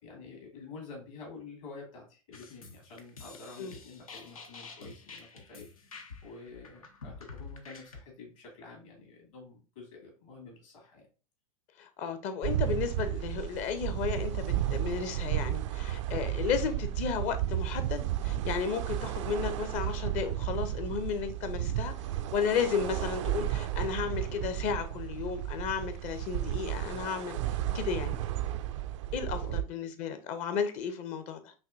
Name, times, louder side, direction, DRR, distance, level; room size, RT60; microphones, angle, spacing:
voice 1, 0.0-11.1 29.3-29.6, left 3 dB, 65° left, 2.2 m, -49 dB
sound 1, 2.3-8.0, left 4 dB, 80° left, 0.7 m, -48 dB
voice 2, 11.8-21.9 22.3-28.2 29.1-31.5, left 7 dB, 40° left, 0.7 m, -33 dB
sound 2, 12.4-29.6, right 13 dB, 60° right, 0.4 m, -33 dB
5.8 x 2.7 x 2.5 m
hypercardioid pair, 95°, 18 cm